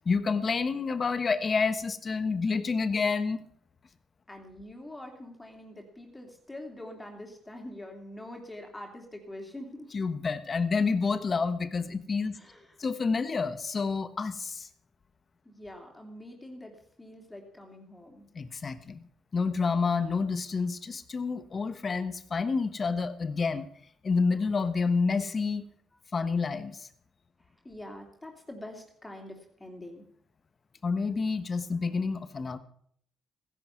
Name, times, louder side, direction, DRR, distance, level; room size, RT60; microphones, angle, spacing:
voice 1, 0.0-3.4 9.9-12.4 12.8-14.7 18.3-19.0 19.3-23.7 24.0-25.6 26.1-26.9 30.8-32.6, left 4 dB, 40° left, 11 dB, 1.2 m, -29 dB
voice 2, 4.3-9.9 12.3-12.8 15.4-18.3 27.4-30.1, left 1 dB, 15° left, 2 dB, 3.0 m, -45 dB
15.5 x 11.0 x 5.9 m, 0.65 s
cardioid pair, 90°, 0 cm